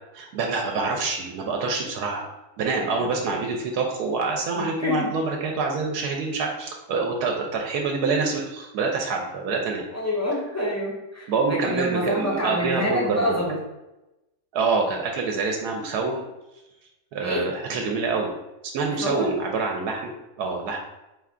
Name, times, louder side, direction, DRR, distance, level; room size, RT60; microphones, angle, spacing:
voice 1, 0.1-2.3 2.6-9.8 11.3-13.4 14.5-16.2 17.1-18.3 18.7-20.8, right 4 dB, 80° right, 1 dB, 1.1 m, -26 dB
voice 2, 3.0-3.3 4.6-5.1 9.9-13.5 17.2-17.4 18.9-19.3, equal, 20° left, -4 dB, 0.5 m, -27 dB
4.6 x 2.2 x 3.6 m, 0.96 s
omnidirectional pair, 1.7 m